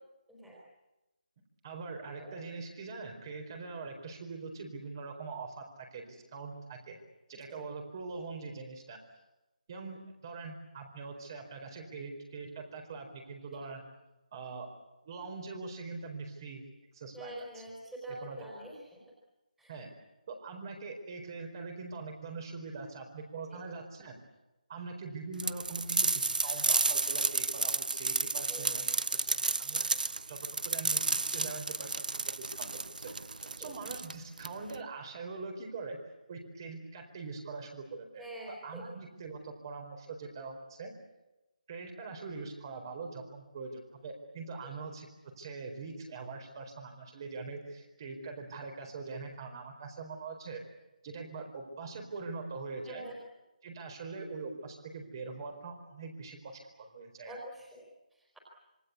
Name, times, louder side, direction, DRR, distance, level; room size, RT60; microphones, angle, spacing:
voice 1, 0.3-0.6 2.2-2.4 7.5-7.6 17.1-19.0 19.6-19.7 23.5-23.6 28.5-28.8 33.6-33.7 38.2-38.8 44.6-44.7 52.8-53.2 57.3-58.4, right 1 dB, 5° right, -3 dB, 4.3 m, -46 dB
voice 2, 1.6-7.0 7.3-9.0 9.7-13.8 14.3-14.7 15.0-16.6 16.9-17.6 18.1-18.4 19.7-19.9 20.3-24.1 24.7-29.8 30.3-30.4 30.6-36.0 36.3-40.9 41.7-45.1 45.4-50.6 51.0-53.1 53.6-57.4, right 4 dB, 30° right, 3 dB, 4.4 m, -43 dB
sound 1, 25.4-34.8, right 3 dB, 75° right, 1.0 m, -31 dB
27.0 x 23.0 x 8.4 m, 1.0 s
figure-of-eight pair, 170°, 5 cm